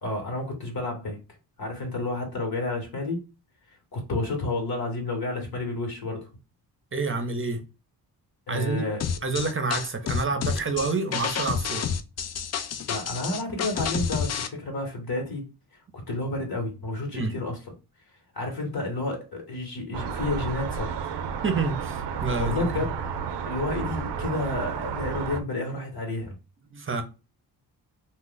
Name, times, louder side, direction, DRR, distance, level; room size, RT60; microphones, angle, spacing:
voice 1, 0.0-1.2 1.6-3.3 3.9-6.3 8.5-9.0 12.9-15.4 16.1-17.6 18.3-20.9 22.4-22.9 23.4-26.4, left 2 dB, 60° left, 1.1 m, -30 dB
voice 2, 6.9-7.6 8.5-8.9 9.2-11.9 17.1-17.3 21.4-22.7 26.7-27.0, right 3 dB, 30° right, 0.7 m, -28 dB
sound 1, 9.0-14.5, left 7 dB, 40° left, 0.4 m, -29 dB
sound 2, 19.9-25.4, right 6 dB, 70° right, 0.5 m, -31 dB
2.4 x 2.2 x 3.8 m
cardioid pair, 60°, 42 cm